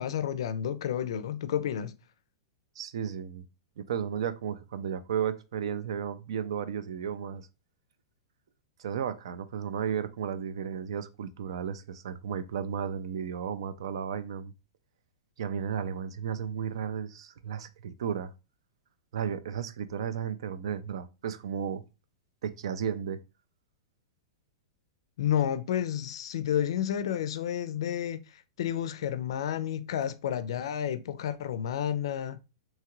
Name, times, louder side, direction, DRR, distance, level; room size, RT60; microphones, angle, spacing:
voice 1, 0.0-1.9 25.2-32.4, left 9 dB, 70° left, 0.4 m, -31 dB
voice 2, 2.8-3.4 3.8-7.5 8.8-14.5 15.4-18.3 19.1-21.8 22.4-23.2, right 8 dB, 75° right, 0.4 m, -34 dB
2.9 x 2.3 x 2.9 m
hypercardioid pair, 150°, 3 cm